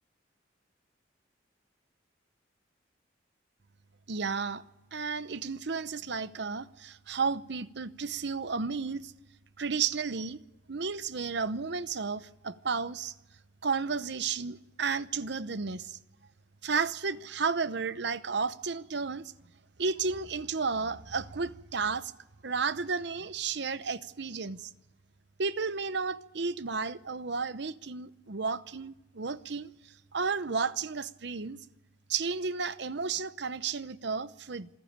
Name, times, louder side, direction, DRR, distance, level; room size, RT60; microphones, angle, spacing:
voice 1, 4.1-4.6 4.9-9.1 9.6-10.4 10.7-13.1 13.6-16.0 16.6-19.3 19.8-22.1 22.4-24.7 25.4-31.6 32.1-34.7, right 5 dB, 60° right, 0.8 m, -32 dB
27.0 x 15.0 x 8.8 m
head